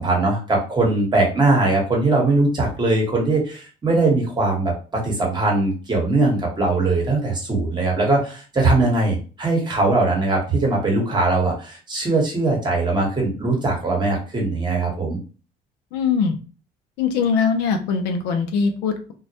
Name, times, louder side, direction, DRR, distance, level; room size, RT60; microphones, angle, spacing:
voice 1, 0.0-15.2, right 2 dB, 25° right, -1 dB, 1.0 m, -20 dB
voice 2, 15.9-16.3 17.0-19.1, left 5 dB, 85° left, 6 dB, 0.5 m, -21 dB
2.2 x 2.0 x 2.7 m, 0.37 s
cardioid pair, 110°, 17 cm